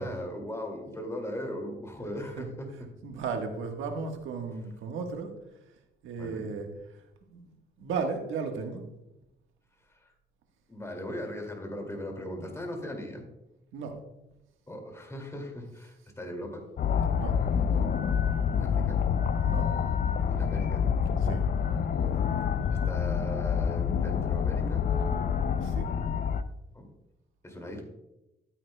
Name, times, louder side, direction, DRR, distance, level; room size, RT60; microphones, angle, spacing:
voice 1, 0.0-2.7 6.1-6.5 10.0-10.1 10.7-13.2 14.7-16.6 18.5-19.0 20.3-20.8 22.7-24.8 26.7-26.9 27.4-27.8, left 1 dB, 15° left, 3 dB, 2.3 m, -38 dB
voice 2, 3.0-5.3 6.0-6.7 7.3-7.5 7.8-8.9 13.7-14.0 17.2-17.4 19.4-19.7 21.2-21.4 25.5-25.9, right 5 dB, 85° right, 4 dB, 1.4 m, -35 dB
sound 1, 16.8-26.4, left 7 dB, 45° left, 0.5 m, -27 dB
12.5 x 8.9 x 2.2 m, 0.93 s
cardioid pair, 90°, 20 cm